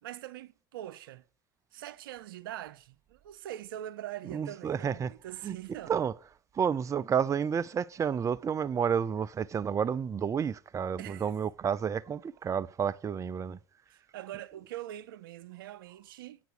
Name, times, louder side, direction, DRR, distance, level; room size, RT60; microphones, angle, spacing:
voice 1, 0.0-1.2 1.7-5.9 11.0-11.3 13.9-16.4, right 13 dB, 90° right, 0.7 m, -43 dB
voice 2, 4.3-5.1 5.4-6.1 6.5-13.6, right 7 dB, 30° right, 0.6 m, -30 dB
9.3 x 6.1 x 6.8 m
supercardioid pair, 90°, 11 cm